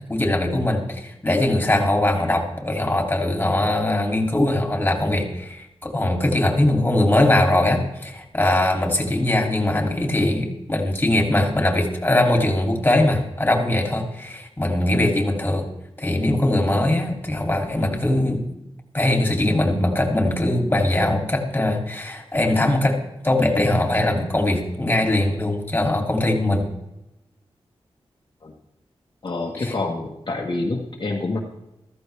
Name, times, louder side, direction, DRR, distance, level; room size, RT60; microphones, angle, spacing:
voice 1, 0.1-15.6 16.0-18.4 18.9-23.0 23.2-26.6 29.6-29.7, left 1 dB, 20° left, 2 dB, 2.9 m, -21 dB
voice 2, 29.2-31.4, left 2 dB, 45° left, -1 dB, 1.6 m, -27 dB
14.5 x 14.0 x 3.5 m, 0.92 s
wide cardioid pair, 105°, 10 cm